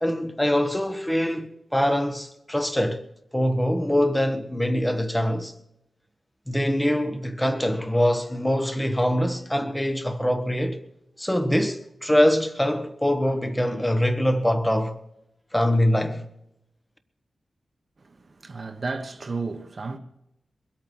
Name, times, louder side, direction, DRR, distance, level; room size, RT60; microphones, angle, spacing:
voice 1, 0.0-3.0 3.3-5.5 6.5-10.8 11.2-15.0 15.5-16.3, equal, 5° left, 1.1 m, -23 dB
voice 2, 18.4-20.0, right 3 dB, 40° right, 1.1 m, -32 dB
22.5 x 8.7 x 6.2 m
wide cardioid pair, 170°, 0 cm